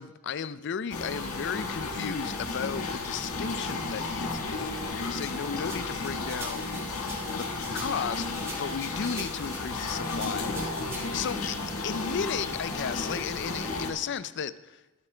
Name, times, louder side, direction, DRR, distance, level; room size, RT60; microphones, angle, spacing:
voice 1, 0.0-7.0 7.4-7.5 7.7-11.6 11.8-14.8, left 7 dB, 55° left, 0.4 m, -35 dB
sound 1, 0.9-13.9, left 3 dB, 80° left, 1.5 m, -33 dB
sound 2, 5.7-11.3, right 2 dB, 10° right, 1.6 m, -43 dB
21.0 x 7.4 x 3.4 m
head